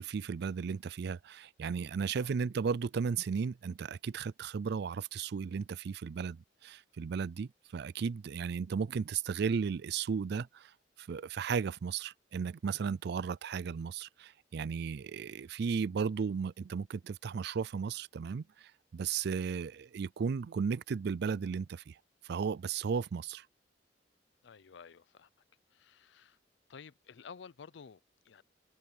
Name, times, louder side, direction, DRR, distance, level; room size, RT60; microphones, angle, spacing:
voice 1, 0.0-10.7 11.0-22.0 22.2-23.5, right 6 dB, 60° right, 0.4 m, -35 dB
voice 2, 24.4-25.3 25.7-26.4 26.7-28.4, left 6 dB, 70° left, 0.5 m, -52 dB
head